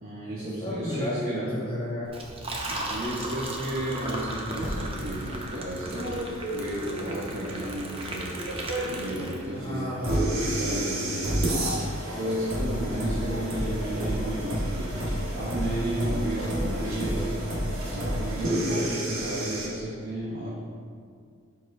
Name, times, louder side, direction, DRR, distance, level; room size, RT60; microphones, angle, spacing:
voice 1, 0.0-1.5 2.7-8.3 8.8-9.9 10.5-11.2 12.2-15.0 15.3-17.3 17.9-20.6, right 1 dB, 45° right, -8 dB, 1.2 m, -33 dB
voice 2, 0.6-2.1 9.5-10.4, left 1 dB, 25° left, -7 dB, 1.7 m, -33 dB
Liquid, 2.1-9.8, right 1 dB, 25° right, 0.7 m, -36 dB
sound 1, 4.6-19.7, right 1 dB, 90° right, 1.4 m, -30 dB
11.5 x 4.6 x 2.7 m, 2.1 s
head